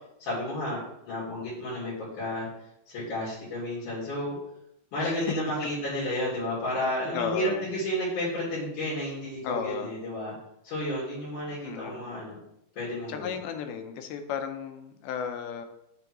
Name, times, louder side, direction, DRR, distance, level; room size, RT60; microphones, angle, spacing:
voice 1, 0.2-2.5 2.9-4.4 4.9-10.3 10.6-12.4 12.8-13.3, left 1 dB, 55° left, -7 dB, 3.4 m, -32 dB
voice 2, 5.0-5.4 7.1-7.7 9.4-10.0 11.4-12.1 13.1-15.7, left 7 dB, 85° left, 6 dB, 2.5 m, -34 dB
6.8 x 3.5 x 5.9 m, 0.79 s
omnidirectional pair, 4.4 m